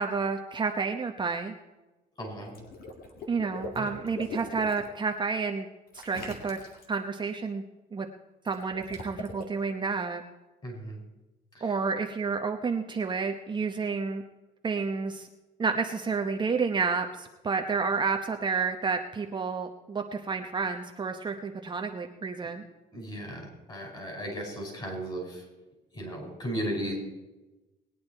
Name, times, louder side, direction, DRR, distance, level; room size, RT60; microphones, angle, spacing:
voice 1, 0.0-1.5 3.3-5.7 5.9-6.6 6.9-7.6 7.9-8.1 8.4-10.2 11.6-14.2 14.6-15.3 15.6-22.6, right 5 dB, 25° right, 4 dB, 0.8 m, -30 dB
voice 2, 2.2-2.5 3.7-3.9 10.6-11.0 11.5-11.7 22.9-25.4 25.9-26.9, equal, 30° left, 1 dB, 5.3 m, -36 dB
Water / Liquid, 2.4-4.9 5.9-7.0 8.5-9.4, left 2 dB, 60° left, 2.2 m, -41 dB
19.5 x 9.4 x 4.4 m, 1.1 s
cardioid pair, 110°, 17 cm